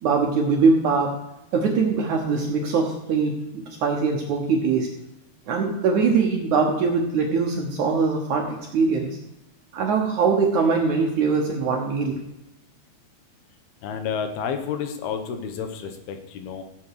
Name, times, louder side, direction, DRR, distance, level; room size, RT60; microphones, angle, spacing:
voice 1, 0.0-1.1 1.5-4.9 5.5-9.2 9.7-12.2, right 4 dB, 70° right, 1 dB, 1.9 m, -22 dB
voice 2, 13.8-16.6, left 7 dB, 80° left, 7 dB, 2.9 m, -30 dB
15.5 x 7.8 x 4.8 m, 0.88 s
omnidirectional pair, 4.6 m